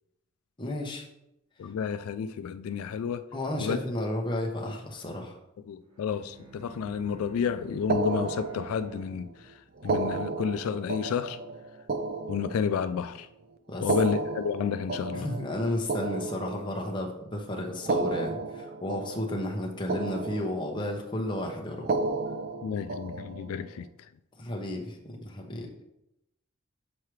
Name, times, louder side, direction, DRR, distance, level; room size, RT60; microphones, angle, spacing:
voice 1, 0.6-1.0 3.3-5.3 13.7-14.0 15.1-21.9 24.4-25.7, left 1 dB, 20° left, 0.8 m, -33 dB
voice 2, 1.6-3.2 3.6-3.8 4.7-4.8 5.7-9.5 9.8-11.4 12.3-13.3 13.8-15.3 22.6-23.9, left 7 dB, 80° left, 0.3 m, -31 dB
Bowed string instrument, 5.8-9.9, right 3 dB, 90° right, 1.2 m, -49 dB
Anvil loop tuned lower, 7.9-9.1 9.8-13.1 13.8-17.1 17.8-19.6 19.9-21.0 21.8-23.6, right 3 dB, 45° right, 0.4 m, -33 dB
7.3 x 4.6 x 3.2 m
head